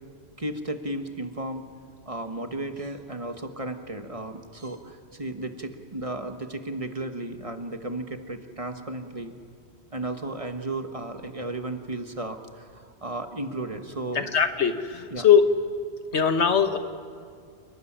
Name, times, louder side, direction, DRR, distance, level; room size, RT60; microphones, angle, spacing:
voice 1, 0.4-1.7 2.1-9.3 9.9-14.3 15.1-15.3, right 2 dB, 30° right, 6 dB, 1.3 m, -34 dB
voice 2, 14.1-15.5 16.1-16.8, left 7 dB, 85° left, 8 dB, 1.6 m, -21 dB
29.0 x 13.0 x 10.0 m, 2.3 s
omnidirectional pair, 1.1 m